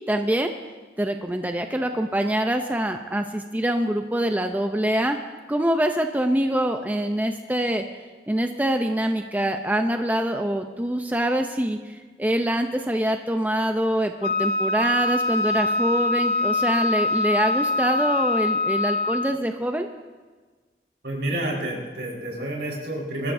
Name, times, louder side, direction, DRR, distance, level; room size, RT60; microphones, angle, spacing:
voice 1, 0.1-0.5 1.0-5.2 5.5-7.8 8.3-19.9, right 1 dB, 10° right, 5 dB, 0.5 m, -24 dB
Wind instrument woodwind instrument, 14.2-19.4, left 2 dB, 55° left, 0.6 m, -24 dB
voice 2, 21.0-23.3, right 1 dB, 80° right, -2 dB, 4.3 m, -29 dB
23.5 x 14.0 x 2.6 m, 1.4 s
head